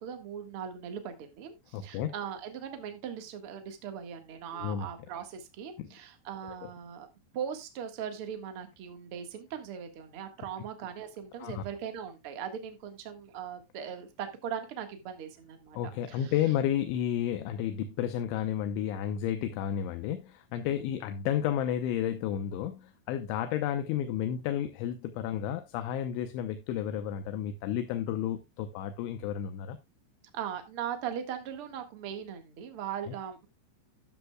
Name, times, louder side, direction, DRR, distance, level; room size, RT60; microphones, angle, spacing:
voice 1, 0.0-7.1 7.3-15.8 16.1-16.3 20.5-20.6 30.3-33.5, right 8 dB, 70° right, 1.3 m, -39 dB
voice 2, 1.7-2.1 4.5-4.9 5.8-5.9 11.4-11.6 15.7-29.8, left 10 dB, 85° left, 3.2 m, -32 dB
12.5 x 11.0 x 2.3 m
omnidirectional pair, 5.3 m